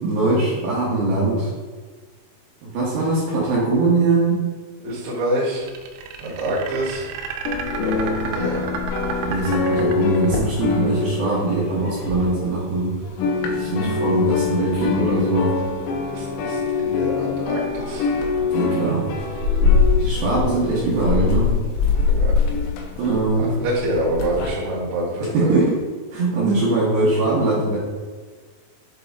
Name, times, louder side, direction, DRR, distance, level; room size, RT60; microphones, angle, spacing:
voice 1, 0.0-1.5 2.6-4.4 9.2-13.0 13.4-15.6 18.5-19.1 20.0-21.5 23.0-23.5 25.3-25.8 26.1-27.8, right 2 dB, 70° right, -7 dB, 2.7 m, -21 dB
voice 2, 4.8-5.6 6.2-7.1 7.8-8.6 16.1-18.1 22.1-22.3 23.3-25.6, right 1 dB, 55° right, -6 dB, 2.1 m, -26 dB
sound 1, 5.5-10.5, right 5 dB, 90° right, 3.2 m, -32 dB
sound 2, 7.5-12.8 13.0-24.5, left 5 dB, 85° left, 3.2 m, -23 dB
8.0 x 3.8 x 3.6 m, 1.5 s
omnidirectional pair, 5.5 m